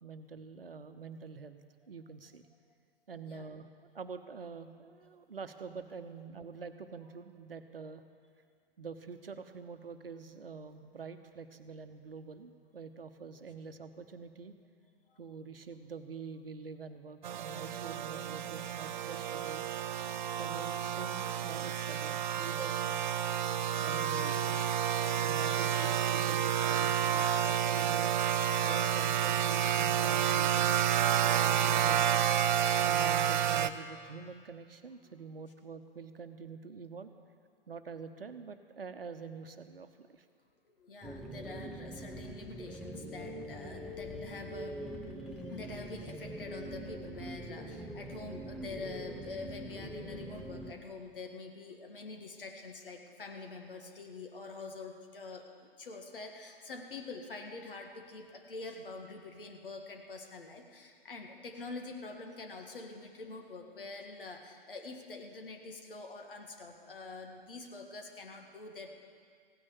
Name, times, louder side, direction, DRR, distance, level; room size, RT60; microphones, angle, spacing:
voice 1, 0.0-2.4 3.1-3.7 3.9-8.0 8.8-14.5 15.2-19.6 20.4-22.9 23.8-24.7 25.2-28.1 28.6-30.8 31.1-32.2 32.8-37.1 37.7-40.3, right 5 dB, 70° right, 9 dB, 1.0 m, -46 dB
sound 1, 17.2-33.7, right 9 dB, 50° right, 0.6 m, -30 dB
voice 2, 40.7-44.9 45.2-68.9, left 3 dB, 65° left, 3 dB, 1.9 m, -46 dB
sound 2, 41.0-50.7, right 1 dB, ahead, 0.4 m, -43 dB
16.0 x 9.7 x 7.2 m, 2.1 s
figure-of-eight pair, 115°, 30 cm